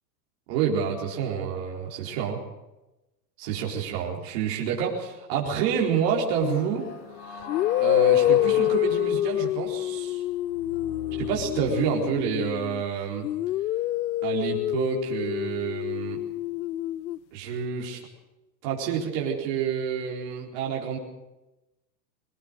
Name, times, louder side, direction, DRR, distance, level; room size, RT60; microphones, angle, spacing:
voice 1, 0.5-2.4 3.4-6.8 7.3-7.4 7.8-10.2 11.2-13.3 14.2-16.2 17.3-18.0 18.6-21.0, right 7 dB, 35° right, -2 dB, 4.4 m, -28 dB
sound 1, 6.4-6.7 7.5-12.8 13.2-17.2, left 14 dB, 85° left, 0.8 m, -26 dB
sound 2, 6.4-12.4, left 5 dB, 55° left, 6.6 m, -40 dB
23.5 x 18.5 x 6.5 m, 0.96 s
supercardioid pair, 170°, 50 cm